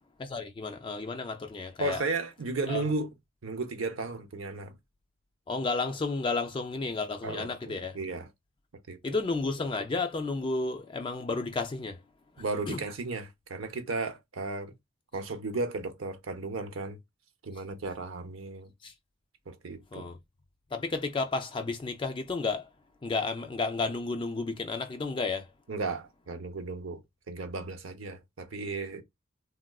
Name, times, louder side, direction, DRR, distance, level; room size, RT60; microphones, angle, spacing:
voice 1, 0.2-2.0 2.7-2.8 5.5-8.0 9.0-12.0 12.4-12.8 18.8-18.9 19.9-20.2 20.7-22.7 23.0-25.5, left 3 dB, 25° left, 0.3 m, -32 dB
voice 2, 1.8-3.1 3.4-4.8 7.2-8.3 8.9-9.0 12.4-14.7 15.1-17.0 17.4-18.7 19.5-20.1 25.7-27.0 27.3-29.0, right 3 dB, 80° right, 0.8 m, -34 dB
3.5 x 2.3 x 2.3 m
head